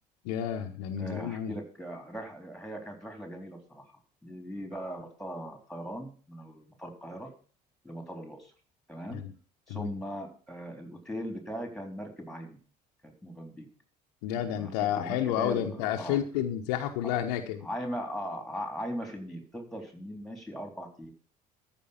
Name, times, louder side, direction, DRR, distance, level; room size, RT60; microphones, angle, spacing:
voice 1, 0.2-1.5 9.1-9.3 9.7-9.9 14.2-17.7, left 10 dB, 70° left, 5 dB, 1.1 m, -30 dB
voice 2, 1.0-3.8 4.2-7.3 7.8-8.5 8.9-9.2 9.7-12.6 13.0-13.6 14.3-16.2 17.6-21.1, equal, ahead, 4 dB, 3.8 m, -39 dB
13.5 x 5.5 x 7.1 m, 0.41 s
figure-of-eight pair, 55°, 21 cm